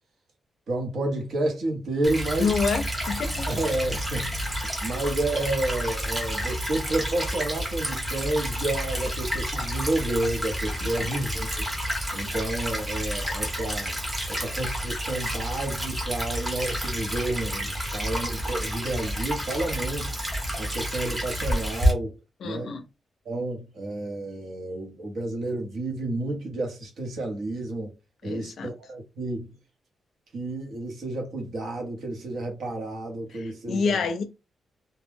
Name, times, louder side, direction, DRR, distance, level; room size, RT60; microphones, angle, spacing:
voice 1, 0.7-2.5 3.5-4.4 4.8-11.6 12.1-13.9 14.3-20.1 20.6-22.1 22.4-22.7 23.2-27.9 28.2-29.5 30.3-34.1, right 2 dB, 65° right, 1.0 m, -30 dB
Stream / Trickle dribble, 2.0-21.9, equal, 10° right, 0.9 m, -30 dB
voice 2, 2.4-3.5 10.8-10.9 22.4-22.8 28.2-28.7 33.3-34.2, left 5 dB, 60° left, 0.4 m, -28 dB
2.3 x 2.1 x 3.3 m
wide cardioid pair, 150°, 0 cm